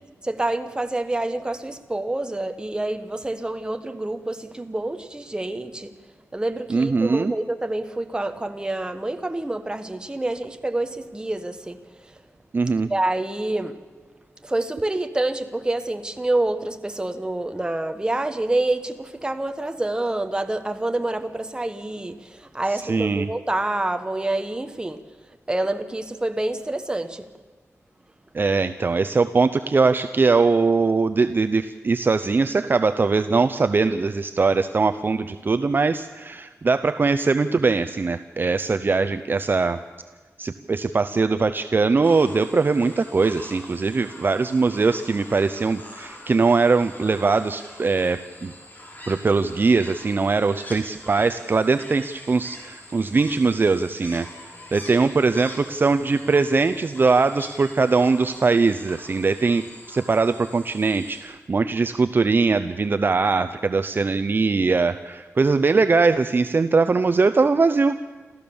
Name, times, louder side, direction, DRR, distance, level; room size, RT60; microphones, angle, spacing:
voice 1, 0.2-5.9 6.3-11.8 12.9-13.8 14.4-22.2 22.5-25.0 25.5-27.2, right 2 dB, 15° right, 8 dB, 1.3 m, -27 dB
voice 2, 6.7-7.3 12.5-12.9 22.7-23.3 28.3-39.8 40.4-48.5 49.1-54.3 54.7-68.0, right 4 dB, 40° right, 11 dB, 0.6 m, -21 dB
sound 1, 42.0-61.2, left 1 dB, 35° left, 4.6 m, -43 dB
27.5 x 14.5 x 7.1 m, 1.3 s
wide cardioid pair, 125°, 5 cm